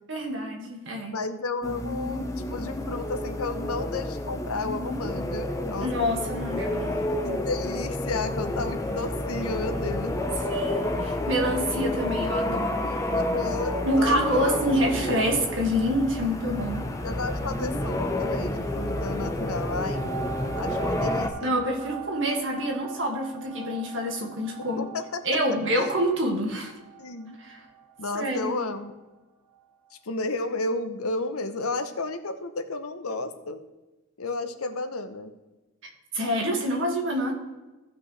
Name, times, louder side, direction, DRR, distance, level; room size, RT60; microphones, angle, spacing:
voice 1, 0.1-1.2 5.8-6.9 10.5-12.9 13.8-16.9 21.4-24.9 25.2-26.7 27.4-27.6 28.1-28.5 35.8-37.3, equal, 60° right, 1 dB, 1.9 m, -27 dB
voice 2, 1.1-5.9 7.2-10.1 11.9-12.0 12.3-12.6 13.1-14.7 17.0-20.0 20.6-21.5 24.8-25.2 25.8-25.9 27.0-27.4 28.0-28.9 29.9-33.6 34.2-35.3, left 3 dB, 85° left, 9 dB, 0.9 m, -32 dB
sound 1, 1.6-21.3, left 1 dB, 15° left, 0.7 m, -30 dB
sound 2, 19.7-28.9 29.6-29.7, right 8 dB, 85° right, 1.1 m, -41 dB
15.0 x 5.8 x 3.2 m, 1.1 s
head